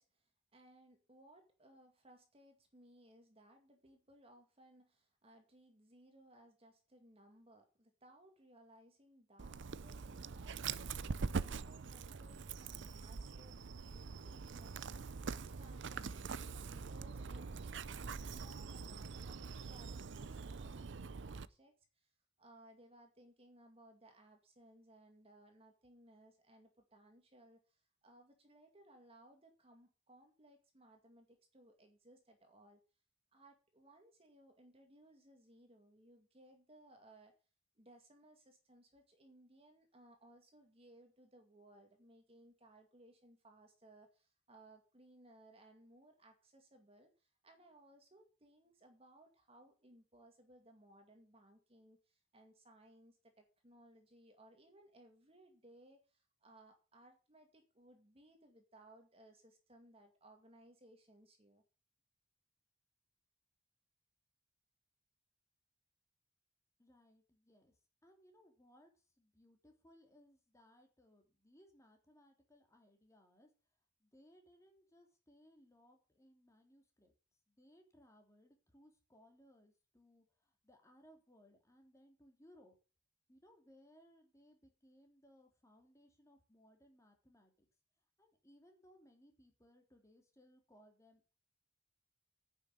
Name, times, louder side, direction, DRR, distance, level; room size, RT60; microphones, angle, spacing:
voice 1, 0.0-15.0 15.2-22.1 22.4-32.8 33.3-37.3 37.8-61.6, right 1 dB, 30° right, 4 dB, 2.2 m, -63 dB
Dog, 9.4-21.5, right 5 dB, 65° right, 0.6 m, -44 dB
voice 2, 66.8-73.5 74.0-77.1 77.5-82.7 83.3-87.7 88.2-91.3, equal, 15° left, 3 dB, 2.9 m, -66 dB
10.0 x 6.6 x 8.4 m, 0.34 s
head